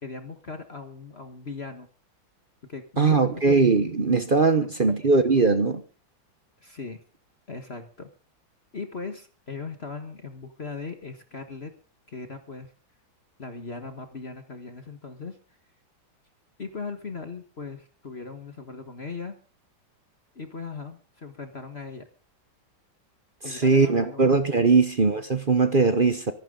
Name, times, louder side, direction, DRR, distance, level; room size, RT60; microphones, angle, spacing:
voice 1, 0.0-1.9 2.7-3.6 4.6-4.7 6.6-7.0 7.5-8.1 8.7-11.7 12.1-12.7 13.4-15.4 16.6-19.3 20.3-22.1 23.4-24.2 24.7-24.8 26.0-26.1, left 4 dB, 35° left, 1.6 m, -38 dB
voice 2, 3.0-5.8 23.4-26.3, right 4 dB, 35° right, 0.9 m, -20 dB
24.5 x 12.0 x 3.9 m
omnidirectional pair, 2.1 m